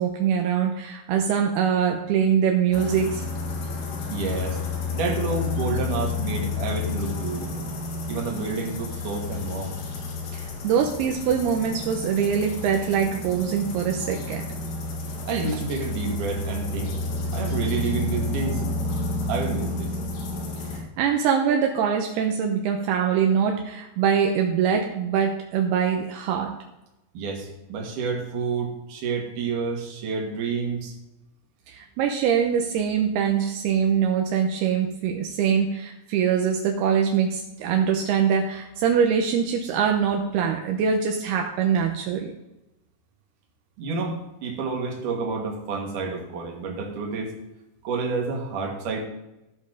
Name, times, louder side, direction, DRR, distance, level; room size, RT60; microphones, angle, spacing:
voice 1, 0.0-3.2 10.3-14.5 20.7-26.5 31.7-42.3, right 7 dB, 80° right, 2 dB, 2.7 m, -23 dB
sound 1, 2.7-20.8, left 3 dB, 80° left, 3.9 m, -30 dB
voice 2, 4.1-4.6 4.9-7.7 8.1-9.8 15.3-17.0 17.3-18.6 19.3-20.0 27.1-30.9 43.8-47.4 47.8-49.0, right 4 dB, 55° right, 1 dB, 3.0 m, -29 dB
16.0 x 5.3 x 4.9 m, 0.95 s
omnidirectional pair, 4.8 m